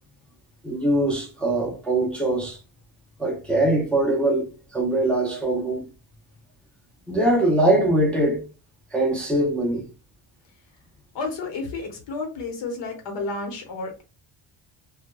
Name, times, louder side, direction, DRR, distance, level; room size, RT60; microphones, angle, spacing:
voice 1, 0.6-2.6 3.2-5.8 7.1-8.4 8.9-9.9, right 1 dB, 5° left, 0.4 m, -22 dB
voice 2, 11.1-14.0, left 3 dB, 70° left, 1.0 m, -31 dB
2.2 x 2.2 x 2.9 m
cardioid pair, 160°, 46 cm